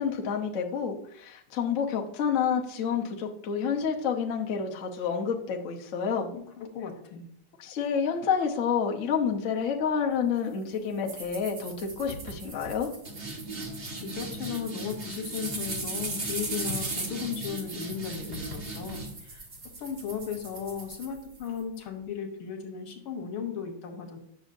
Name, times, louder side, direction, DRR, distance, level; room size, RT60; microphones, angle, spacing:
voice 1, 0.0-6.3 7.6-12.9, left 6 dB, 50° left, 1 dB, 1.0 m, -29 dB
voice 2, 6.3-7.3 13.9-19.4 19.8-24.2, left 7 dB, 90° left, 3 dB, 2.0 m, -36 dB
sound 1, 11.1-21.6, right 2 dB, 35° right, 1.1 m, -37 dB
8.9 x 6.2 x 2.6 m, 0.72 s
omnidirectional pair, 2.2 m